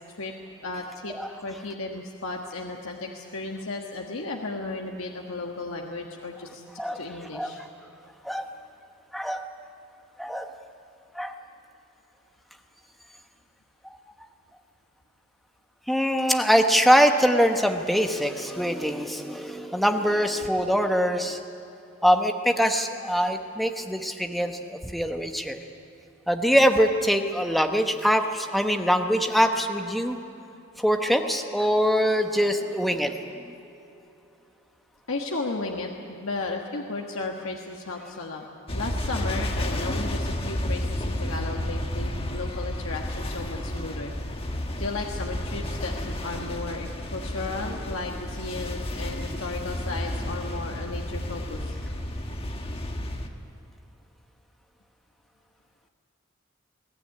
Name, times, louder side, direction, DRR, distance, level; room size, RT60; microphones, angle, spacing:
voice 1, 0.6-1.1 1.4-6.6 6.9-7.6 35.1-44.1 44.8-51.7, left 3 dB, 70° left, 1 dB, 1.5 m, -34 dB
voice 2, 7.3-7.7 8.2-8.5 9.1-9.5 10.2-10.5 11.1-11.4 15.9-21.4 22.0-25.6 26.3-30.2 30.8-33.2, equal, ahead, 4 dB, 1.1 m, -23 dB
sound 1, 38.7-53.3, left 1 dB, 25° left, 1.4 m, -31 dB
22.0 x 17.0 x 9.7 m, 2.8 s
head